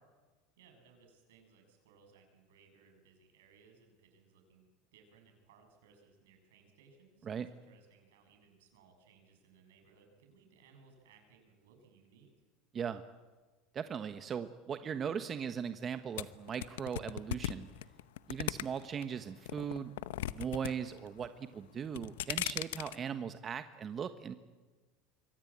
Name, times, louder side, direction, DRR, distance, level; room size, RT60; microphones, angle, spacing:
voice 1, 0.6-12.3, right 5 dB, 80° right, 4 dB, 7.5 m, -64 dB
voice 2, 13.7-17.7 18.3-19.9 20.3-24.3, right 7 dB, 35° right, 9 dB, 1.3 m, -39 dB
sound 1, 16.2-19.0 19.4-20.7 21.0-21.5 21.8-23.0, left 14 dB, 80° left, 0.8 m, -37 dB
26.0 x 23.0 x 8.8 m, 1.3 s
hypercardioid pair, 95°, 0 cm